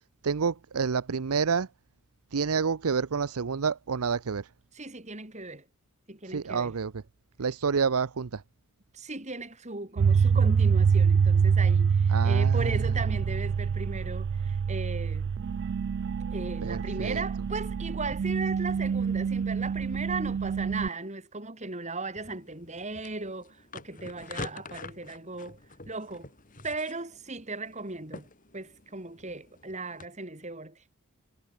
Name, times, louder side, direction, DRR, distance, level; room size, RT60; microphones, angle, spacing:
voice 1, 0.2-1.7 2.3-4.5 6.3-7.0 7.4-8.4 12.1-13.0 16.6-17.2, right 5 dB, 85° right, 0.7 m, -29 dB
voice 2, 4.7-5.6 6.1-6.7 8.9-15.3 16.3-25.6 25.9-26.3 26.6-28.3 28.5-30.8, right 3 dB, 30° right, 4.1 m, -37 dB
sound 1, 10.0-20.9, right 6 dB, 50° right, 0.3 m, -25 dB
sound 2, 22.2-30.1, left 3 dB, 40° left, 4.1 m, -46 dB
head